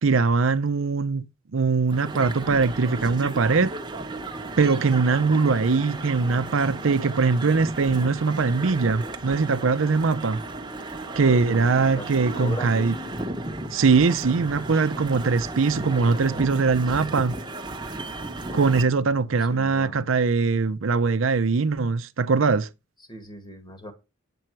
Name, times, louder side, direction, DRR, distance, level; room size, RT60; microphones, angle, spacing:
voice 1, 0.0-3.7 4.6-10.4 11.2-12.9 13.7-17.4 18.5-22.7, right 4 dB, 75° right, 0.6 m, -22 dB
sound 1, 1.9-18.8, right 2 dB, 20° right, 1.0 m, -35 dB
voice 2, 11.3-12.9 18.3-20.1 23.0-23.9, left 1 dB, 20° left, 1.6 m, -39 dB
9.0 x 7.6 x 4.5 m
head